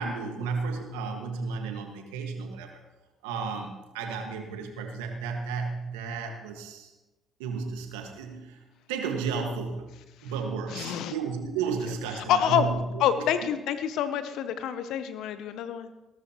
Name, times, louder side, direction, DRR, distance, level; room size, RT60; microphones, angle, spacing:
voice 1, 0.0-2.7 3.2-3.7 3.9-6.9 7.4-8.6 8.9-9.9 10.2-12.8, right 5 dB, 85° right, 4 dB, 1.7 m, -33 dB
voice 2, 10.7-11.1 12.1-12.7 13.0-15.9, left 9 dB, 70° left, 11 dB, 0.7 m, -27 dB
18.0 x 12.5 x 3.0 m, 1.1 s
hypercardioid pair, 50°, 0 cm